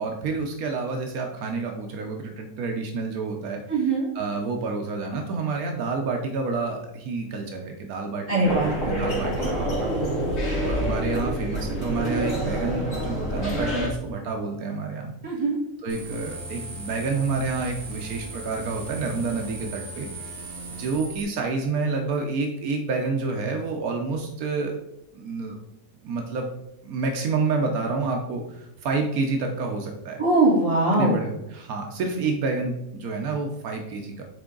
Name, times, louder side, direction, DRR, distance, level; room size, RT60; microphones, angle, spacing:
voice 1, 0.0-9.9 10.6-15.1 15.8-20.3 20.8-24.8 25.1-25.6 26.0-26.5 26.8-30.2 31.0-34.2, right 4 dB, 80° right, 2 dB, 1.3 m, -29 dB
voice 2, 3.7-4.1 8.3-8.7 15.2-15.6 30.2-31.1, right 2 dB, 25° right, -6 dB, 2.4 m, -21 dB
sound 1, 8.4-13.9, right 1 dB, 50° left, 2.2 m, -27 dB
sound 2, 15.9-21.2, right 2 dB, 60° right, 1.4 m, -38 dB
8.5 x 3.5 x 3.8 m, 0.85 s
omnidirectional pair, 1.5 m